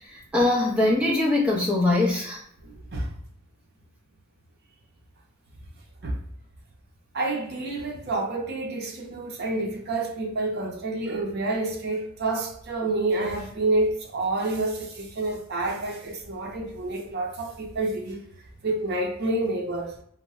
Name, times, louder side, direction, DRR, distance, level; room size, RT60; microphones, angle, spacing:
voice 1, 0.1-2.4, left 2 dB, 5° right, -4 dB, 0.6 m, -22 dB
voice 2, 2.6-3.1 6.0-6.2 7.1-18.2 18.6-19.9, right 2 dB, 50° right, 1 dB, 0.6 m, -28 dB
2.1 x 2.0 x 3.4 m, 0.69 s
head